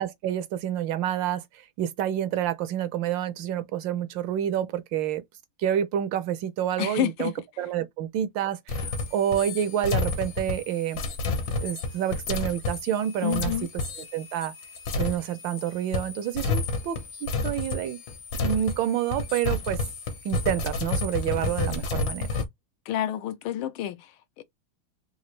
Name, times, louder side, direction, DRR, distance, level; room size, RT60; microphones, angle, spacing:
voice 1, 0.0-1.4 1.8-5.2 5.6-7.3 7.6-11.0 11.6-13.5 14.1-14.5 15.0-18.0 18.4-19.8 20.2-22.3, right 10 dB, 75° right, 1.2 m, -28 dB
voice 2, 6.8-7.4 13.2-13.7 22.9-24.4, left 10 dB, 85° left, 1.5 m, -29 dB
sound 1, 8.7-15.7 15.9-22.4, left 3 dB, 65° left, 1.5 m, -30 dB
4.0 x 2.3 x 3.1 m
omnidirectional pair, 2.2 m